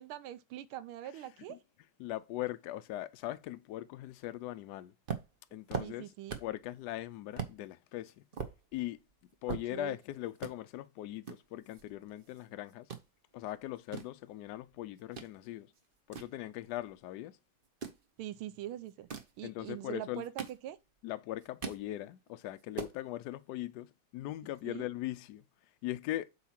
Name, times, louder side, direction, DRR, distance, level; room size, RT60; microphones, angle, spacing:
voice 1, 0.0-1.6 5.8-6.4 9.7-10.0 18.2-19.1 19.4-20.8 24.6-24.9, right 12 dB, 80° right, 1.6 m, -43 dB
voice 2, 2.0-4.9 5.5-6.1 6.4-8.2 8.7-9.0 9.4-12.9 13.3-15.7 16.1-17.4 19.4-20.2 21.0-25.4 25.8-26.3, left 15 dB, 85° left, 0.9 m, -40 dB
book grabs, 5.1-6.6 7.0-7.1 7.4-7.6 8.0-10.0 10.3-10.5 11.2-12.4 12.7-13.1 13.6-15.3 15.7-17.0 17.6-18.0 18.9-19.4 20.0-21.0 21.3-21.9 22.3-22.4 22.6-23.0, right 6 dB, 65° right, 0.5 m, -41 dB
8.1 x 3.0 x 5.8 m
omnidirectional pair, 2.3 m